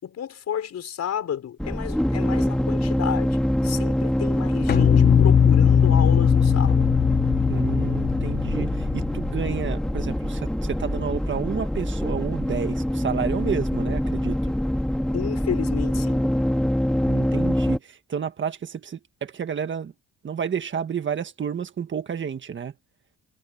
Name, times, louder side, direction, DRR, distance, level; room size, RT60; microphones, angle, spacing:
voice 1, 0.0-3.4 3.6-6.9 15.1-16.3, left 9 dB, 55° left, 5.5 m, -32 dB
sound 1, 1.6-17.8, equal, ahead, 1.7 m, -25 dB
sound 2, 4.7-9.9, left 8 dB, 30° left, 0.7 m, -20 dB
voice 2, 7.5-14.5 17.1-19.9 20.2-22.7, right 7 dB, 35° right, 1.6 m, -30 dB
cardioid pair, 150°, 32 cm